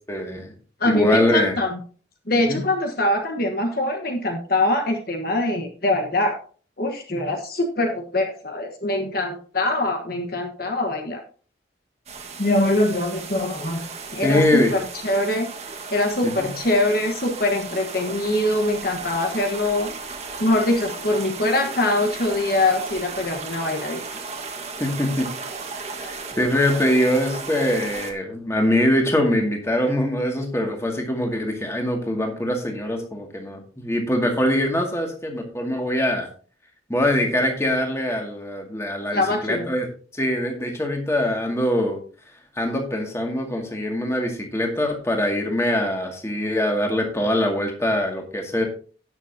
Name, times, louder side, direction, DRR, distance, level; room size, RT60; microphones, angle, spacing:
voice 1, 0.1-0.5 0.8-1.5 2.5-2.6 14.2-14.7 16.2-16.5 24.8-25.3 25.9-36.3 36.9-39.9 40.1-42.0 42.6-48.6, left 1 dB, 15° left, 1 dB, 2.1 m, -23 dB
voice 2, 0.8-1.8 2.3-6.4 6.8-11.2 12.4-14.6 15.0-15.5 15.9-19.9 20.4-24.0 39.1-39.7, left 1 dB, 50° left, 3 dB, 1.3 m, -23 dB
sound 1, 12.1-28.1, right 4 dB, 35° right, 1.6 m, -35 dB
17.5 x 6.9 x 2.8 m, 0.41 s
head